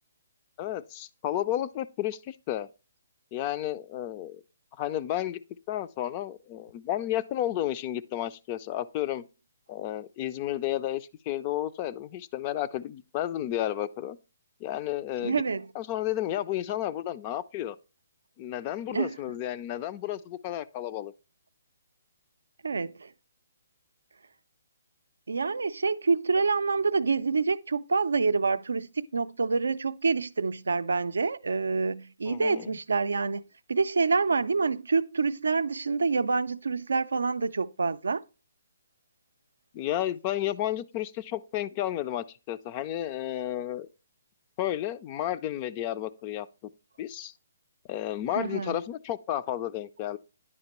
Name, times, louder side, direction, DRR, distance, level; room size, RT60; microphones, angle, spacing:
voice 1, 0.6-2.7 3.3-4.4 4.8-5.4 5.7-9.2 9.7-14.2 14.6-15.4 15.7-17.8 18.4-21.1 32.3-32.7 39.7-43.9 44.6-46.5 47.0-47.3 47.9-50.2, left 12 dB, 30° left, 0.3 m, -32 dB
voice 2, 15.2-15.7 18.9-19.2 22.6-23.1 25.3-33.4 33.7-38.2 48.4-48.8, right 4 dB, 85° right, 0.3 m, -27 dB
9.7 x 5.1 x 2.9 m
hypercardioid pair, 155°, 0 cm